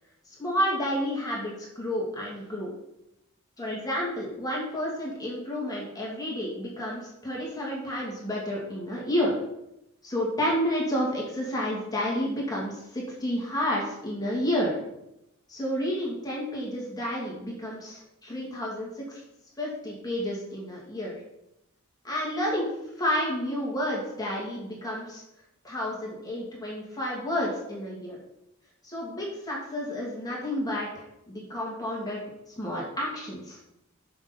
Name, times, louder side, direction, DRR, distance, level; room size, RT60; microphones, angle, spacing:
voice 1, 0.3-2.7 3.6-9.4 10.0-14.8 15.5-19.2 19.6-21.1 22.0-22.7 23.0-25.2 25.6-28.2 28.8-32.2 32.5-33.6, equal, 20° left, -4 dB, 2.4 m, -30 dB
7.2 x 6.1 x 6.9 m, 0.85 s
head